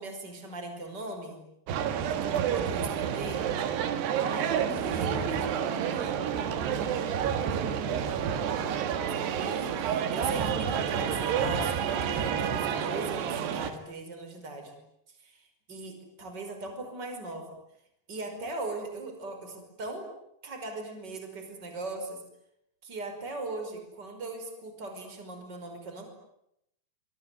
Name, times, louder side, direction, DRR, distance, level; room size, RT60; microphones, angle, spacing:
voice 1, 0.0-1.4 2.1-3.5 4.7-5.1 9.3-14.8 15.2-17.6 18.1-20.1 20.4-22.2 22.8-26.1, right 2 dB, 25° right, 6 dB, 5.6 m, -39 dB
sound 1, 1.7-13.7, right 8 dB, 85° right, 4.0 m, -29 dB
voice 2, 4.2-8.9, right 4 dB, 60° right, 5 dB, 5.6 m, -40 dB
26.0 x 24.0 x 9.7 m, 0.80 s
omnidirectional pair, 4.7 m